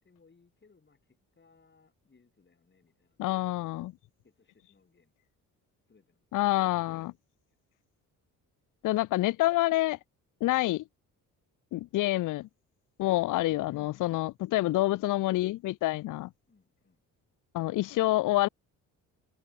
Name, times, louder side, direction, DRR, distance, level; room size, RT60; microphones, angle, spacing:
voice 1, 0.0-3.9 4.2-5.1 5.9-6.3 7.5-7.6 16.5-17.0, left 4 dB, 30° left, 6.5 m, -65 dB
voice 2, 3.2-3.9 6.3-7.1 8.8-10.0 10.4-10.8 11.7-12.5 13.0-16.3 17.5-18.5, left 17 dB, 60° left, 0.5 m, -27 dB
cardioid pair, 75°, 35 cm